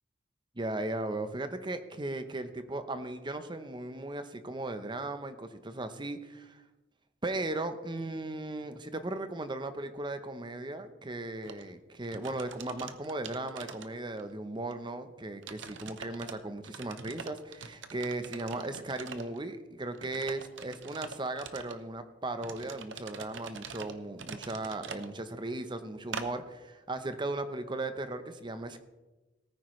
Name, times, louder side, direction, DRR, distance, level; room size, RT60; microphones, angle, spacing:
voice 1, 0.6-6.6 7.2-28.8, right 2 dB, 25° right, 9 dB, 0.8 m, -37 dB
sound 1, 11.4-11.6 12.0-14.3 14.7-14.8 15.4-16.3 16.6-19.4 19.9-21.8 22.4-25.1 26.1-26.3, right 5 dB, 80° right, 0.8 m, -44 dB
18.0 x 9.4 x 3.2 m, 1.1 s
head